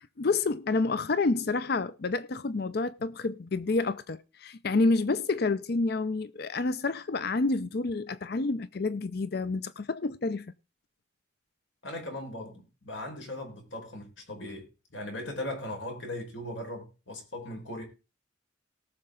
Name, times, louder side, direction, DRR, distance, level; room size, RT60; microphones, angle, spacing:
voice 1, 0.0-10.5, left 3 dB, 50° left, 0.5 m, -29 dB
voice 2, 11.8-17.8, left 1 dB, 70° left, 4.8 m, -38 dB
18.5 x 6.6 x 3.7 m
head